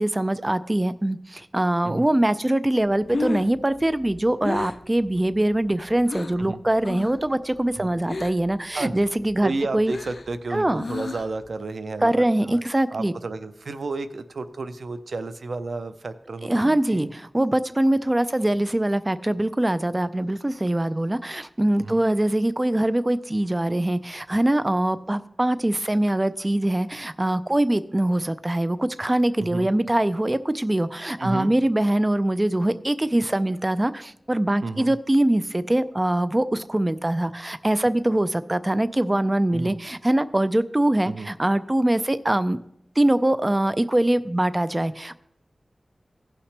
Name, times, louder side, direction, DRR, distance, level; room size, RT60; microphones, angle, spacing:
voice 1, 0.0-9.9 10.5-10.8 12.0-13.1 16.4-42.6 43.0-45.2, right 1 dB, 25° right, 14 dB, 0.4 m, -23 dB
Breathing, 2.9-6.5 6.8-7.3 7.5-8.6 8.9-11.5, left 3 dB, 65° left, 0.4 m, -33 dB
voice 2, 8.7-9.1 9.4-12.6 12.9-17.1 21.8-22.0 29.4-29.7 31.2-31.5 34.6-34.9 39.5-39.8 41.1-41.3, right 3 dB, 85° right, 12 dB, 0.5 m, -32 dB
16.5 x 5.8 x 3.3 m, 0.74 s
wide cardioid pair, 65°, 0 cm